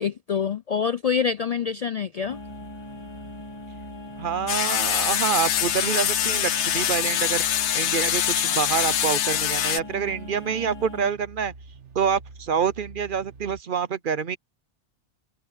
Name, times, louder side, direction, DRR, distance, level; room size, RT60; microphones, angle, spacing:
voice 1, 0.0-2.4, left 6 dB, 55° left, 0.4 m, -26 dB
sound 1, 2.2-13.6, right 3 dB, 85° right, 2.0 m, -46 dB
sound 2, 2.3-11.1, left 2 dB, 20° left, 1.8 m, -41 dB
voice 2, 4.2-7.4 7.7-11.5 11.9-14.4, right 7 dB, 55° right, 0.8 m, -26 dB
sound 3, 4.5-9.8, left 11 dB, 80° left, 1.0 m, -24 dB
omnidirectional pair, 1.2 m